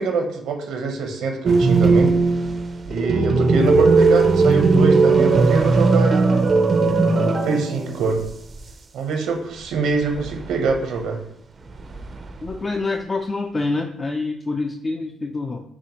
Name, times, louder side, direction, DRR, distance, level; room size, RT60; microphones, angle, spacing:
voice 1, 0.0-2.1 2.9-6.4 7.0-8.2 8.9-11.2, right 4 dB, 85° right, 3 dB, 0.7 m, -24 dB
sound 1, 1.5-8.0 8.3-8.4 10.1-10.7 11.8-12.5, right 3 dB, 40° right, 0.4 m, -17 dB
voice 2, 12.4-15.6, left 3 dB, 30° left, 4 dB, 0.3 m, -26 dB
5.9 x 2.1 x 2.9 m, 0.71 s
cardioid pair, 90°, 0 cm